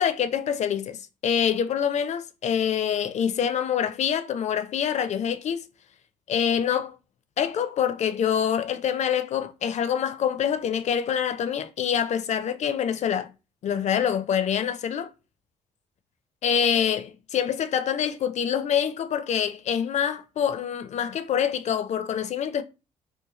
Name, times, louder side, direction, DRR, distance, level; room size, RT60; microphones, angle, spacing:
voice 1, 0.0-5.6 6.3-7.0 7.4-13.3 13.6-15.1 16.4-22.6, left 8 dB, 55° left, 0.4 m, -25 dB
2.6 x 2.2 x 2.9 m
supercardioid pair, 60°, 14 cm